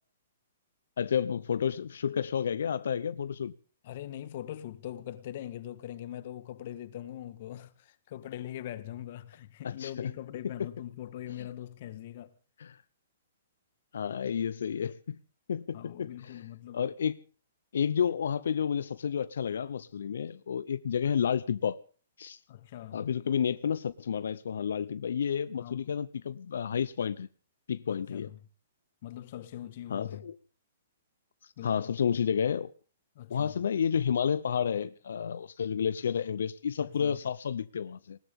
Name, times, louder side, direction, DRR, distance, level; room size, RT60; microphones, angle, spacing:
voice 1, 1.0-3.5 9.6-10.1 11.4-11.5 12.6-12.8 13.9-15.2 15.5-16.4 16.7-17.2 17.7-21.8 22.2-22.4 22.9-27.3 27.7-28.3 29.9-30.3 31.4-32.7 33.3-38.2, left 7 dB, 75° left, 0.8 m, -31 dB
voice 2, 3.8-12.3 15.7-16.9 22.5-23.0 25.6-25.9 27.9-28.4 29.0-30.2 31.6-31.9 33.1-33.5 36.8-37.2, left 12 dB, 40° left, 1.4 m, -42 dB
20.0 x 19.0 x 3.7 m
hypercardioid pair, 170°, 0 cm